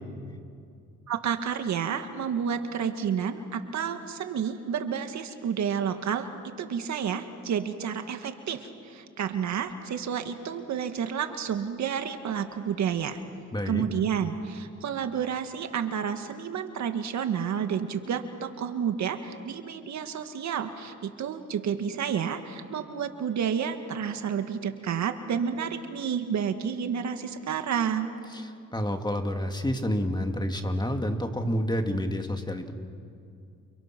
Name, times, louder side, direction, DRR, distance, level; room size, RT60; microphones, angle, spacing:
voice 1, 1.1-13.2 13.7-28.1, right 7 dB, 65° right, 7 dB, 1.9 m, -30 dB
voice 2, 13.5-13.8 28.3-28.4 28.7-32.7, equal, 15° left, 5 dB, 2.4 m, -29 dB
29.5 x 29.0 x 6.1 m, 2.4 s
cardioid pair, 90°, 30 cm